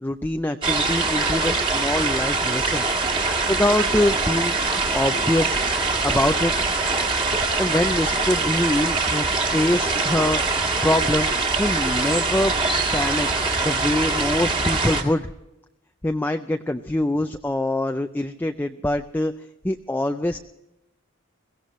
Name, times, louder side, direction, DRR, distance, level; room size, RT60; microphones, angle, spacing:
voice 1, 0.0-2.8 3.5-4.6 4.9-5.6 6.0-6.5 7.6-10.4 10.8-11.3 11.6-12.5 12.9-13.3 13.6-15.3 16.0-19.3 19.6-20.4, left 1 dB, 10° left, 6 dB, 0.4 m, -24 dB
sound 1, 0.6-15.0, right 3 dB, 25° right, 1.9 m, -23 dB
22.5 x 16.5 x 3.1 m, 0.92 s
head